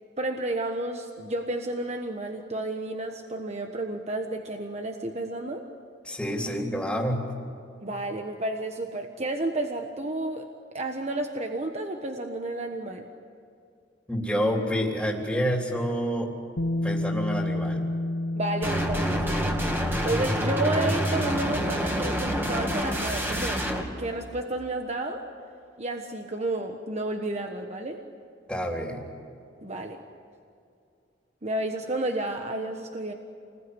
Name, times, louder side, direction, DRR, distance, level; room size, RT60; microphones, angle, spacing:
voice 1, 0.2-5.6 7.8-13.1 18.3-19.5 20.0-23.6 24.0-25.3 25.8-28.0 29.6-30.0 31.4-33.1, right 2 dB, 35° right, 4 dB, 1.3 m, -31 dB
voice 2, 6.0-7.3 14.1-16.3 16.8-17.8 28.5-29.0, equal, 5° left, 0 dB, 3.4 m, -28 dB
Bass guitar, 16.6-22.8, left 1 dB, 80° left, 1.3 m, -31 dB
sound 1, 18.6-23.8, equal, 10° right, 2.7 m, -27 dB
28.5 x 21.0 x 9.8 m, 2.5 s
head